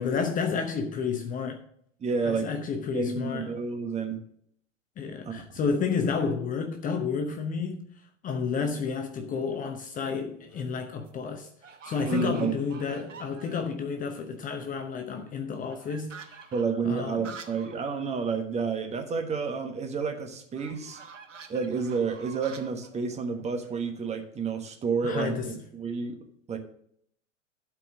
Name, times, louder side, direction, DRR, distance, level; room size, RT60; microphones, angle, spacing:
voice 1, 0.0-1.6 2.2-3.6 5.0-7.8 8.2-11.5 11.8-16.4 16.8-17.2 25.0-25.6, left 5 dB, 20° left, 0.8 m, -31 dB
voice 2, 2.0-2.6 2.9-4.2 5.2-5.3 12.1-12.5 16.5-21.0 21.5-26.2 26.5-26.6, right 5 dB, 20° right, 1.3 m, -30 dB
sound 1, 9.3-9.8 10.3-10.8 11.0-11.1 11.6-13.8 14.2-14.3 14.5-17.8 18.1-18.2 18.5-18.6 20.5-24.3, right 6 dB, 80° right, 1.1 m, -48 dB
12.0 x 4.7 x 6.2 m
figure-of-eight pair, 95°, 37 cm